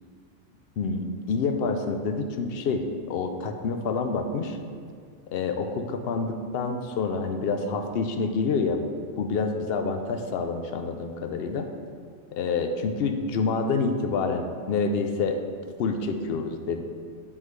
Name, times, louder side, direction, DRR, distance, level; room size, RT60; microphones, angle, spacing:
voice 1, 0.8-4.6 5.3-8.8 9.2-11.7 12.3-15.4 15.8-16.8, left 4 dB, 65° left, 6 dB, 0.7 m, -27 dB
9.7 x 3.6 x 3.1 m, 2.1 s
omnidirectional pair, 1.3 m